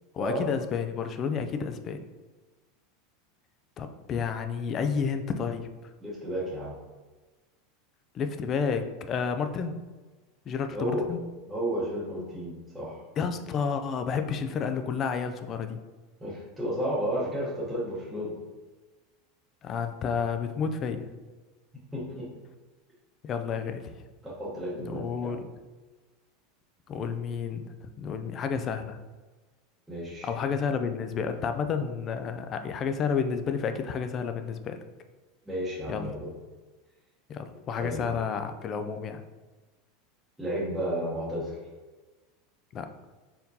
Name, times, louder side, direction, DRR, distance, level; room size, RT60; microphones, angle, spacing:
voice 1, 0.1-2.0 3.8-5.7 8.1-9.8 10.5-11.2 13.2-15.8 19.6-21.1 23.2-23.9 24.8-25.5 26.9-29.0 30.2-34.8 35.9-36.1 37.3-39.2 42.7-42.9, left 6 dB, 30° left, 8 dB, 0.4 m, -31 dB
voice 2, 6.0-6.7 10.7-11.0 11.5-13.0 16.2-18.3 21.9-22.3 24.2-25.4 29.9-30.3 35.5-36.3 37.8-38.1 40.4-41.5, equal, 5° right, -8 dB, 0.9 m, -32 dB
4.5 x 3.7 x 2.7 m, 1.3 s
supercardioid pair, 145°, 0 cm